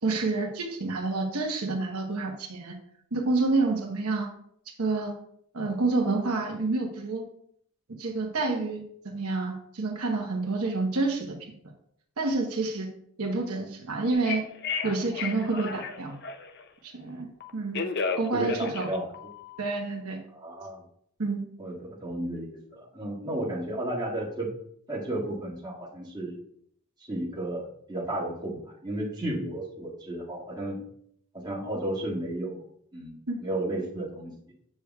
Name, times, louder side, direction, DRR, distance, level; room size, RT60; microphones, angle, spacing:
voice 1, 0.0-2.8 3.1-4.3 4.8-5.2 5.5-7.2 8.0-11.4 12.2-12.9 13.2-14.5 14.8-16.1 16.8-17.3 17.5-17.8 18.2-18.9 19.6-20.2 21.2-21.4 33.3-33.4, right 3 dB, 80° right, 1 dB, 1.1 m, -28 dB
Telephone, 14.1-16.6 17.4-19.8, left 5 dB, 50° left, 0.5 m, -33 dB
voice 2, 18.3-19.1 20.3-20.8 21.6-24.5 24.9-26.4 27.1-30.8 31.3-32.6 32.9-34.3, right 1 dB, 20° right, -7 dB, 1.9 m, -33 dB
7.8 x 6.6 x 2.3 m, 0.66 s
head